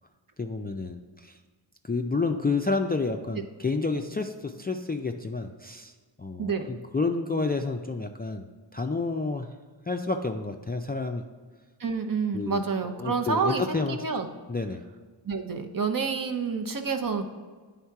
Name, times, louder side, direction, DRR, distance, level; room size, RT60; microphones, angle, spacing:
voice 1, 0.4-1.3 1.8-5.9 6.2-8.5 8.7-9.5 9.9-11.2 12.3-14.0 14.5-14.8, left 3 dB, 25° left, 4 dB, 0.3 m, -30 dB
voice 2, 6.4-6.8 11.8-14.3 15.2-17.2, right 5 dB, 45° right, 6 dB, 0.7 m, -28 dB
9.6 x 3.6 x 4.6 m, 1.4 s
wide cardioid pair, 75°, 46 cm